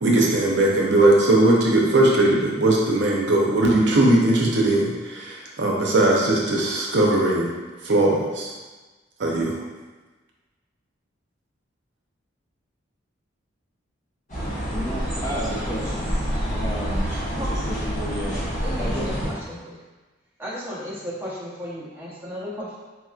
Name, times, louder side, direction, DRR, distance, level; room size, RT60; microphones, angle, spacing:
voice 1, 0.0-7.5 7.8-8.5 9.2-9.6, right 1 dB, 65° right, -2 dB, 0.7 m, -19 dB
sound 1, 14.3-19.3, equal, 40° left, 1.2 m, -27 dB
voice 2, 14.7-16.1 16.5-18.4 18.8-19.2, equal, 20° left, -6 dB, 0.5 m, -32 dB
voice 3, 17.9-19.8 20.4-22.8, equal, 10° right, -7 dB, 0.8 m, -35 dB
4.3 x 2.9 x 2.4 m, 1.3 s
head